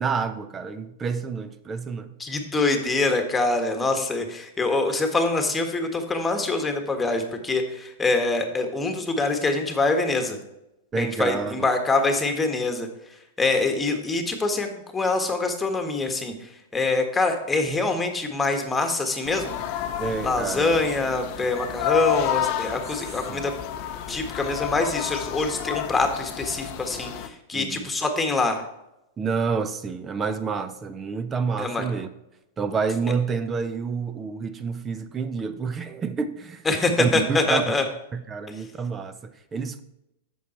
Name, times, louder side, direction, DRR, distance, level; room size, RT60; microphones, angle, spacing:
voice 1, 0.0-2.1 10.9-11.7 20.0-20.8 23.3-23.5 27.5-27.9 29.2-32.1 32.6-36.7 37.0-37.6 38.1-39.8, right 5 dB, 20° right, 0.8 m, -28 dB
voice 2, 2.2-10.4 11.0-12.9 13.4-19.6 20.2-23.5 24.1-28.6 31.6-31.8 36.6-37.8, left 3 dB, 10° left, 1.6 m, -25 dB
sound 1, 19.3-27.3, left 11 dB, 45° left, 0.8 m, -30 dB
8.3 x 7.3 x 4.5 m
figure-of-eight pair, 100°, 0 cm